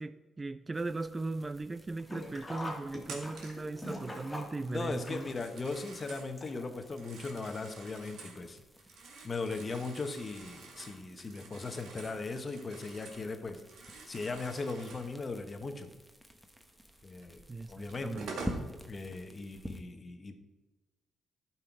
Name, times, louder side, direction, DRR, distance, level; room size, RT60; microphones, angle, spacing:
voice 1, 0.0-5.2 17.5-18.7, right 3 dB, 25° right, 0.3 m, -38 dB
sound 1, 0.7-19.8, equal, 5° right, 1.1 m, -50 dB
Sink (filling or washing), 2.0-6.9 7.2-7.3 8.4-8.5 8.8-8.9, left 1 dB, 15° left, 2.3 m, -44 dB
Telephone, 3.0-3.7 5.2-6.3 6.8-8.4 8.8-13.3 13.6-15.1 17.2-17.3 17.9-18.6, right 3 dB, 75° right, 1.9 m, -48 dB
voice 2, 4.7-8.6 9.2-15.9 17.0-17.4 17.7-18.2 18.9-20.3, left 3 dB, 35° left, 1.1 m, -38 dB
11.5 x 5.8 x 4.7 m
cardioid pair, 90°, 0 cm